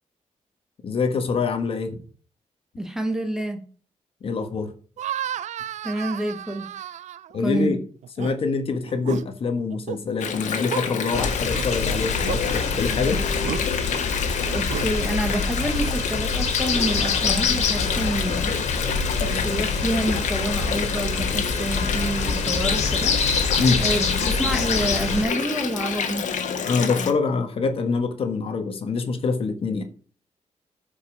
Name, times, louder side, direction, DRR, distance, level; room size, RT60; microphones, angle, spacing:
voice 1, 0.8-2.0 4.2-4.7 7.3-7.8 8.2-13.2 23.6-23.8 26.6-29.8, left 4 dB, 50° left, 1.4 m, -25 dB
voice 2, 2.8-3.6 5.8-6.7 7.4-7.8 14.5-18.5 19.1-23.4 23.8-26.3, right 1 dB, 5° right, 1.2 m, -28 dB
sound 1, 5.0-7.6 8.0-8.3 8.9-9.2 9.7-10.0 10.7-10.8 11.5-11.7 12.2-12.4 13.4-13.6 14.5-14.9, right 10 dB, 75° right, 0.5 m, -32 dB
Water, 10.2-27.1, left 6 dB, 85° left, 1.6 m, -29 dB
sound 2, 11.1-25.2, left 5 dB, 65° left, 2.4 m, -25 dB
14.0 x 5.4 x 5.2 m
wide cardioid pair, 170°, 12 cm